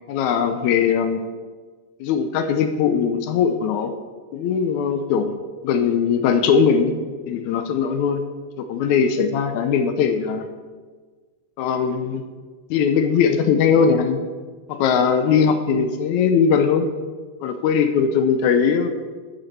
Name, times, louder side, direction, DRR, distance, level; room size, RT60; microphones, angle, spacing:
voice 1, 0.1-1.3 2.0-3.9 4.3-5.3 5.6-7.0 7.3-8.2 8.6-10.5 11.6-12.2 12.7-14.2 14.7-16.9 17.4-18.9, left 6 dB, 80° left, 8 dB, 2.0 m, -20 dB
12.5 x 7.9 x 4.6 m, 1.5 s
omnidirectional pair, 3.5 m